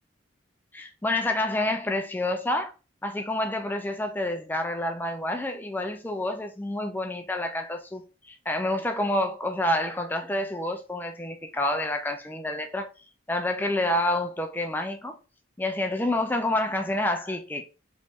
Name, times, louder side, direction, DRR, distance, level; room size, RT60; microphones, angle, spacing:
voice 1, 0.7-2.7 3.0-12.9 13.3-15.2 15.6-17.7, left 1 dB, 10° left, 0.4 m, -28 dB
4.0 x 3.1 x 3.6 m
head